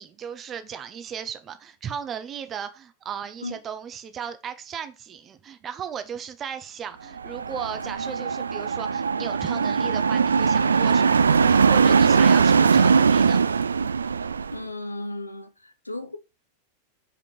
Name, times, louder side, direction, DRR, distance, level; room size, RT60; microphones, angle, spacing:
voice 1, 0.0-13.5, right 8 dB, 25° right, 1.0 m, -36 dB
sound 1, 7.2-14.6, right 5 dB, 75° right, 0.4 m, -20 dB
voice 2, 14.5-16.2, left 2 dB, 85° left, 0.7 m, -35 dB
5.9 x 5.1 x 4.8 m
figure-of-eight pair, 90°, 0 cm